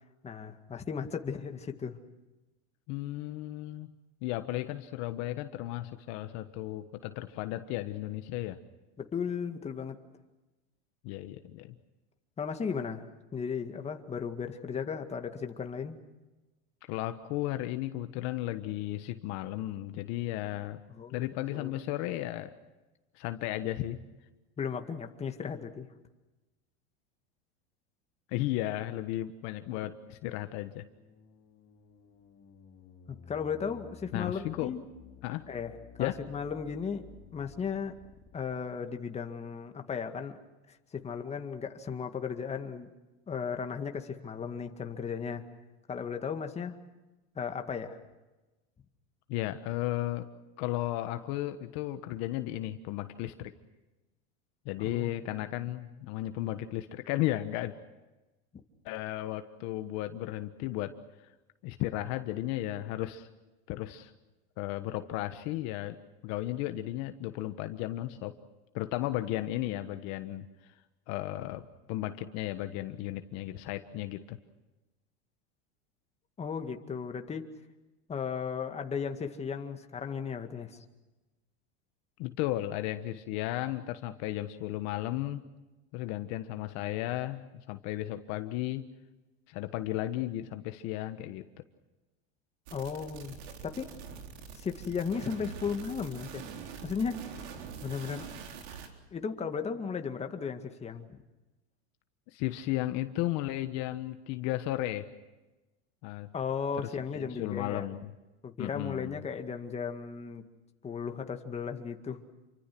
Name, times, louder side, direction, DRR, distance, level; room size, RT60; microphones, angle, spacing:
voice 1, 0.2-2.0 9.0-10.0 12.4-16.0 20.9-21.7 24.6-25.9 33.1-34.8 35.5-37.1 37.3-38.0 38.3-40.4 40.7-42.9 43.3-45.5 45.9-46.8 47.4-48.0 54.8-55.2 58.5-58.6 76.4-77.5 78.1-80.8 92.7-93.4 93.6-93.9 94.5-96.4 96.8-97.3 97.8-98.3 99.1-101.2 106.3-107.9 108.4-110.4 110.8-112.2, left 6 dB, 20° left, 5 dB, 2.0 m, -36 dB
voice 2, 2.9-3.9 4.2-8.6 11.0-11.7 16.9-20.8 21.1-22.5 23.1-24.0 28.3-30.8 34.1-34.7 35.2-35.5 36.0-36.2 49.3-50.3 50.6-53.5 54.6-57.7 58.8-60.9 61.6-63.3 63.7-64.1 64.6-66.0 66.2-68.4 68.7-70.5 71.1-74.4 82.2-85.4 85.9-88.9 89.5-91.4 102.3-105.1 106.0-106.3 106.8-108.1 108.6-109.2, left 15 dB, 55° left, 9 dB, 1.4 m, -34 dB
sound 1, 29.8-38.5, left 7 dB, 35° left, 4.5 m, -55 dB
sound 2, 92.7-98.9, right 6 dB, 80° right, 3.9 m, -44 dB
28.0 x 24.5 x 6.1 m, 1.1 s
supercardioid pair, 130°, 32 cm